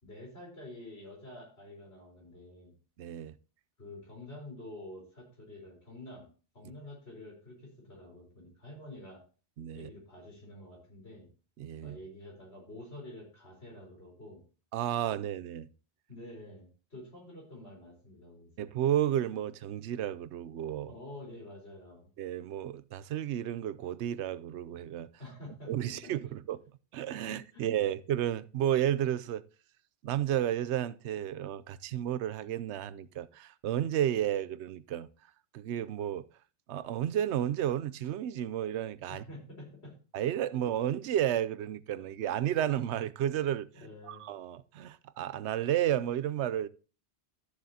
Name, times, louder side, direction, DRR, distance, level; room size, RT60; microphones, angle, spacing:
voice 1, 0.0-2.8 3.8-6.3 6.5-9.2 9.7-11.3 11.8-14.4 16.1-18.5 20.9-22.1 25.2-26.1 27.2-27.7 39.1-39.9 43.7-44.2, left 1 dB, 70° left, 4.5 m, -48 dB
voice 2, 3.0-3.4 9.6-9.9 11.6-12.0 14.7-15.7 18.6-20.9 22.2-25.1 25.7-26.6 26.9-29.4 30.0-35.1 35.5-36.3 36.7-39.2 40.1-43.7 44.1-46.7, right 11 dB, 85° right, 0.9 m, -32 dB
13.0 x 7.4 x 2.8 m
omnidirectional pair, 1.1 m